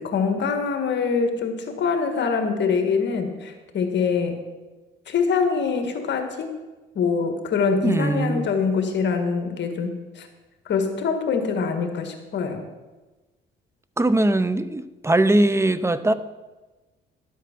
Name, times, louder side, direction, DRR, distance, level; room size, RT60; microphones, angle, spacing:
voice 1, 0.0-4.4 5.1-6.6 7.0-10.3 10.7-12.7, left 5 dB, 65° left, 6 dB, 1.8 m, -24 dB
voice 2, 7.8-8.5 14.0-16.1, right 1 dB, 15° right, 14 dB, 0.6 m, -20 dB
12.5 x 8.4 x 6.0 m, 1.2 s
cardioid pair, 90°, 20 cm